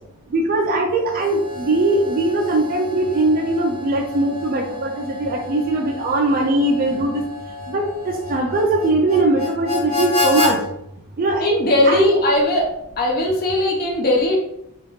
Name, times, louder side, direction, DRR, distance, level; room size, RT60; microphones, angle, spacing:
voice 1, 0.3-7.2 7.7-10.6 11.2-11.5 11.9-12.1, right 2 dB, 40° right, 1 dB, 0.4 m, -20 dB
Harmonica, 1.0-10.5, left 3 dB, 20° left, 1.2 m, -29 dB
voice 2, 11.4-12.7 13.0-14.4, left 1 dB, 45° left, 0 dB, 0.6 m, -18 dB
2.9 x 2.3 x 3.4 m, 0.80 s
head